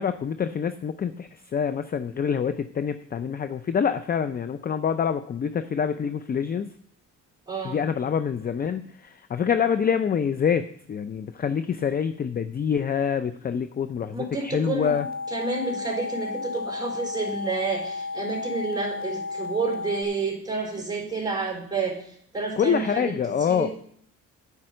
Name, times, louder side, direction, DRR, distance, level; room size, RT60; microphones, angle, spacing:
voice 1, 0.0-6.7 7.6-15.1 22.6-23.7, left 7 dB, 30° left, 11 dB, 0.5 m, -26 dB
voice 2, 7.5-7.8 14.1-14.9 15.3-22.0 22.3-23.7, right 4 dB, 15° right, 0 dB, 3.8 m, -30 dB
sound 1, 14.8-20.0, left 3 dB, 30° right, 1.4 m, -33 dB
9.5 x 5.4 x 7.7 m, 0.64 s
cardioid pair, 90°, 30 cm